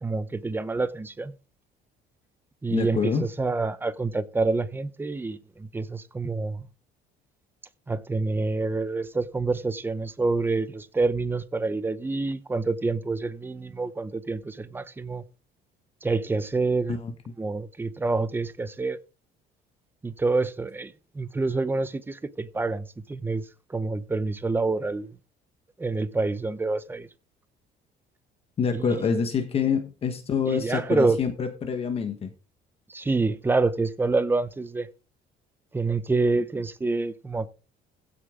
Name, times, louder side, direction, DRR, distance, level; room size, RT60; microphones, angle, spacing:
voice 1, 0.0-1.3 2.6-6.7 7.9-15.2 16.0-17.0 17.4-19.0 20.0-23.4 23.7-25.1 25.8-27.1 28.7-29.2 30.5-31.2 32.9-34.9 35.7-37.5, right 3 dB, 10° right, 0.7 m, -27 dB
voice 2, 2.7-3.2 16.9-17.1 28.6-32.3, left 6 dB, 30° left, 1.3 m, -26 dB
16.0 x 6.8 x 3.7 m
cardioid pair, 160°, 19 cm